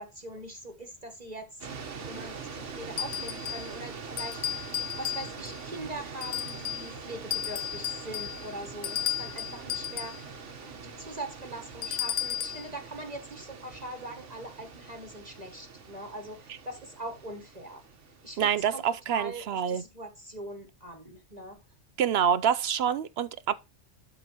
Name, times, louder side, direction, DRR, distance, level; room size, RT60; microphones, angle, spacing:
voice 1, 0.0-10.2 10.6-17.8 18.2-18.8 19.1-21.6, right 1 dB, 35° right, 1.3 m, -42 dB
sound 1, 1.6-18.9, right 5 dB, 80° right, 1.5 m, -43 dB
sound 2, 3.0-3.7 4.2-5.6 6.2-6.9 7.3-10.2 11.8-12.7, left 10 dB, 65° left, 0.8 m, -34 dB
voice 2, 18.4-19.8 22.0-23.5, right 8 dB, 65° right, 0.8 m, -26 dB
12.5 x 4.9 x 3.0 m
omnidirectional pair, 1.2 m